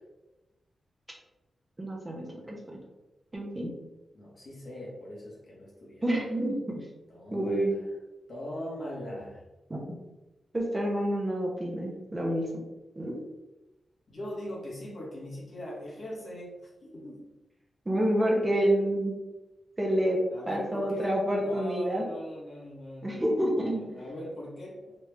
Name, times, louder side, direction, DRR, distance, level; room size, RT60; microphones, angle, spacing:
voice 1, 1.8-2.8 3.3-3.7 6.0-6.8 7.3-7.7 9.7-10.0 10.5-12.5 13.0-13.2 17.9-19.1 19.8-22.0 23.0-23.8, right 1 dB, 20° right, -2 dB, 0.6 m, -28 dB
voice 2, 4.1-6.1 7.1-7.9 8.3-9.4 14.1-17.2 20.3-25.0, equal, 55° left, -4 dB, 1.1 m, -41 dB
3.1 x 2.4 x 3.2 m, 1.0 s
wide cardioid pair, 125°, 0 cm